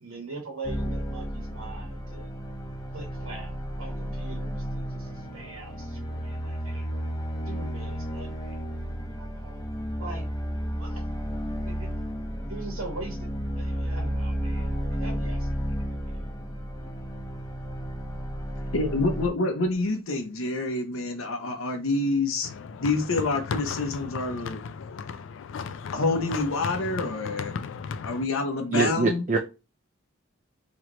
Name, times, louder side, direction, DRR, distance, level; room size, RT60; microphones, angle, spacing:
voice 1, 0.0-2.3 2.9-3.5 3.8-6.9 7.4-8.6 9.2-9.6 10.0-10.3 10.8-11.0 11.7-11.9 12.5-15.6, right 3 dB, 90° right, 1.3 m, -42 dB
sound 1, 0.6-19.3, equal, 15° left, 0.6 m, -32 dB
voice 2, 18.6-22.5 22.8-24.6 25.9-27.6 28.0-29.2, left 3 dB, 80° left, 0.8 m, -27 dB
sound 2, 22.4-28.3, left 5 dB, 65° left, 0.3 m, -36 dB
voice 3, 28.7-29.4, right 3 dB, 35° right, 0.4 m, -23 dB
3.1 x 3.1 x 3.8 m
head